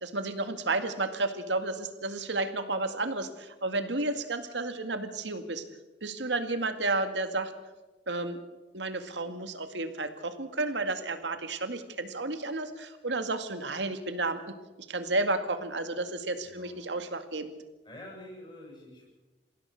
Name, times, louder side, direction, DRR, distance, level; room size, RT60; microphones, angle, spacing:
voice 1, 0.0-5.6 6.0-7.5 8.1-8.4 8.7-14.5 14.9-17.5, right 2 dB, 85° right, 8 dB, 2.1 m, -32 dB
voice 2, 16.4-16.8 17.8-19.1, left 1 dB, 25° left, -3 dB, 7.6 m, -47 dB
27.5 x 16.0 x 6.5 m, 1.1 s
head